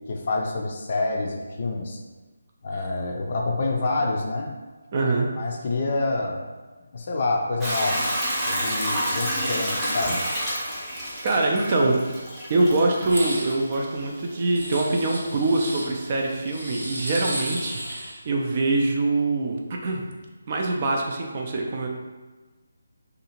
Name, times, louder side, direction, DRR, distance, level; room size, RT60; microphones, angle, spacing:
voice 1, 0.1-2.0 2.6-4.5 5.4-6.4 6.9-8.1 8.4-10.2, left 2 dB, 45° left, 1 dB, 0.4 m, -27 dB
voice 2, 4.9-5.3 8.7-9.0 11.2-12.0 12.5-20.1 20.5-21.9, right 2 dB, 35° right, 0 dB, 0.4 m, -24 dB
Hiss / Toilet flush / Trickle dribble, 7.6-17.9, equal, 5° right, 0.7 m, -31 dB
sound 1, 13.0-13.6 14.5-15.9 16.5-18.2, right 1 dB, 75° right, 0.9 m, -33 dB
2.7 x 2.4 x 2.9 m, 1.3 s
figure-of-eight pair, 155°, 0 cm